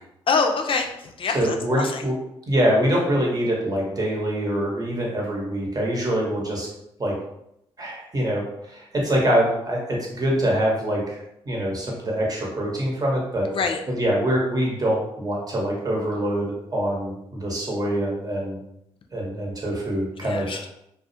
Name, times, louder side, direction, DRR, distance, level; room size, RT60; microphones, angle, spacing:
voice 1, 0.3-2.0 13.5-13.8 20.2-20.7, left 4 dB, 50° left, 4 dB, 0.3 m, -25 dB
voice 2, 1.3-2.1 2.5-6.7 7.0-7.1 7.8-13.5 13.9-18.6 19.1-20.6, equal, 35° right, -3 dB, 1.0 m, -24 dB
2.3 x 2.0 x 2.7 m, 0.80 s
supercardioid pair, 50°, 11 cm